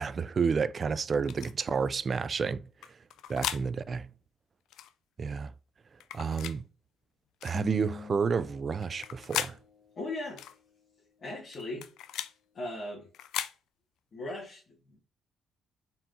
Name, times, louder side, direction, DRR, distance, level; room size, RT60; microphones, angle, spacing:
voice 1, 0.0-2.7 3.3-4.1 5.2-5.5 6.1-6.7 7.4-9.6, right 5 dB, 40° right, 0.3 m, -30 dB
sound 1, 1.3-1.5 2.8-3.6 4.7-4.9 6.0-6.6 7.4-7.6 8.8-9.6 10.4-10.6 11.5-12.3 13.1-13.6, left 11 dB, 85° left, 0.3 m, -37 dB
sound 2, 7.5-10.2, left 4 dB, 25° left, 1.1 m, -44 dB
voice 2, 10.0-10.4 11.2-11.9 12.5-13.1 14.1-15.0, left 2 dB, 50° left, 1.8 m, -38 dB
4.3 x 3.6 x 2.6 m
cardioid pair, 90°, 0 cm